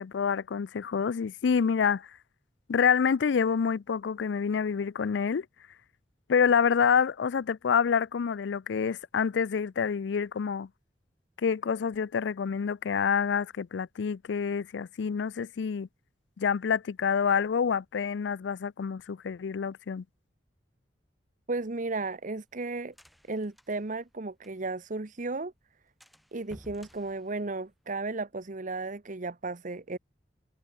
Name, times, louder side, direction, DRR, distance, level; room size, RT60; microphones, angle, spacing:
voice 1, 0.0-2.1 2.7-5.5 6.3-10.7 11.4-15.9 16.4-20.0, left 6 dB, 80° left, 0.4 m, -27 dB
sound 1, 21.5-24.9 25.2-25.3 25.6-25.7 26.0-28.1, equal, ahead, 4.1 m, -56 dB
voice 2, 21.5-22.9 23.3-25.5 26.3-30.0, right 3 dB, 45° right, 1.1 m, -34 dB
head